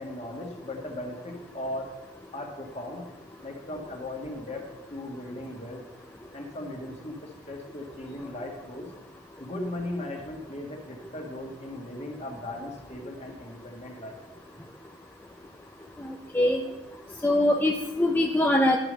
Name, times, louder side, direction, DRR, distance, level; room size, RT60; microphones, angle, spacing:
voice 1, 0.0-1.9 2.3-3.0 3.4-5.8 6.3-8.9 9.4-14.2, left 1 dB, 35° left, 1 dB, 1.7 m, -37 dB
voice 2, 16.0-16.6 17.2-18.8, left 1 dB, 10° left, 1 dB, 0.5 m, -23 dB
10.5 x 4.9 x 6.2 m, 1.0 s
head